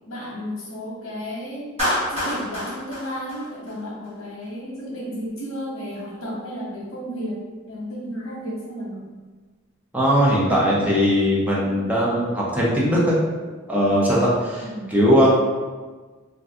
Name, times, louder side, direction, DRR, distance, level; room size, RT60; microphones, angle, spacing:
voice 1, 0.1-1.7 2.1-7.4 7.7-9.1 14.6-15.0, equal, 65° left, -5 dB, 1.0 m, -33 dB
Clapping, 1.8-4.1, left 1 dB, 30° right, 1.0 m, -27 dB
voice 2, 9.9-13.2 13.7-15.3, equal, 10° right, -6 dB, 0.5 m, -19 dB
2.5 x 2.3 x 3.5 m, 1.4 s
head